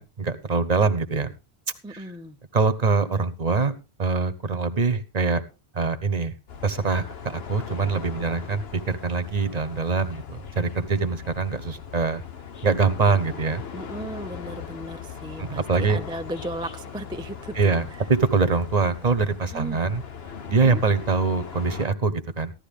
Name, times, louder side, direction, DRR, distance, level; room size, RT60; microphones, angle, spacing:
voice 1, 0.0-1.3 1.9-2.0 2.5-3.7 4.0-5.4 5.7-6.3 6.6-12.2 12.6-13.6 15.4-16.0 17.6-17.8 18.1-20.0 20.5-22.5, right 4 dB, 40° right, 12 dB, 1.0 m, -24 dB
voice 2, 1.8-2.4 13.7-18.1 19.5-19.8 20.6-20.8, right 1 dB, 5° right, 8 dB, 0.4 m, -36 dB
sound 1, 6.5-21.9, left 7 dB, 75° left, 1.3 m, -39 dB
14.5 x 12.0 x 3.5 m, 0.29 s
omnidirectional pair, 1.0 m